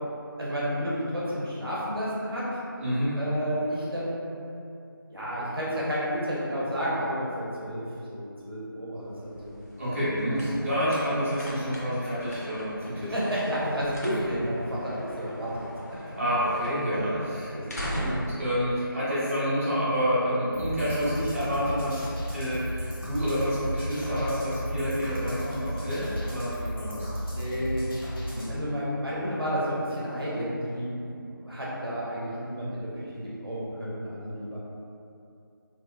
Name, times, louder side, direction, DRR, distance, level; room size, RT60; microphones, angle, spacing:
voice 1, 0.4-2.5 3.2-4.4 5.1-7.8 8.1-9.6 10.3-10.6 13.0-15.7 16.9-17.0 17.5-18.1 27.3-33.1 33.4-34.6, equal, 80° right, -8 dB, 1.0 m, -31 dB
voice 2, 2.8-3.2 9.8-13.1 16.0-17.5 18.0-27.1 28.3-28.5, equal, 35° right, -12 dB, 1.0 m, -28 dB
sound 1, 9.0-19.7, equal, 45° left, 0.5 m, -40 dB
sound 2, 20.5-28.5, equal, 75° left, 0.8 m, -34 dB
2.9 x 2.6 x 2.3 m, 2.6 s
figure-of-eight pair, 175°, 12 cm